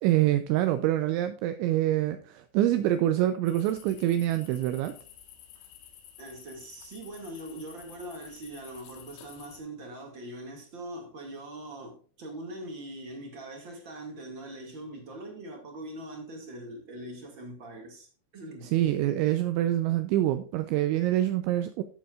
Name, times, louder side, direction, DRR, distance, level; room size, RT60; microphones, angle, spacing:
voice 1, 0.0-4.9 18.7-21.8, right 13 dB, 80° right, 2.9 m, -26 dB
sound 1, 3.5-9.6, left 10 dB, 85° left, 3.8 m, -51 dB
voice 2, 6.2-18.7, right 1 dB, 45° right, 1.5 m, -42 dB
13.0 x 8.4 x 2.4 m
omnidirectional pair, 5.6 m